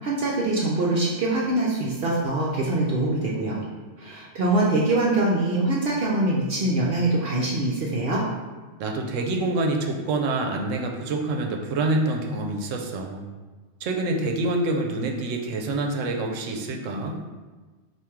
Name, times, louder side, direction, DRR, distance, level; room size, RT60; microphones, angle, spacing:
voice 1, 0.0-3.6 4.0-8.2, right 2 dB, 60° right, -4 dB, 0.8 m, -24 dB
voice 2, 8.8-13.2 13.8-17.2, right 2 dB, 90° right, 2 dB, 0.9 m, -26 dB
3.5 x 2.6 x 4.4 m, 1.3 s
omnidirectional pair, 1.3 m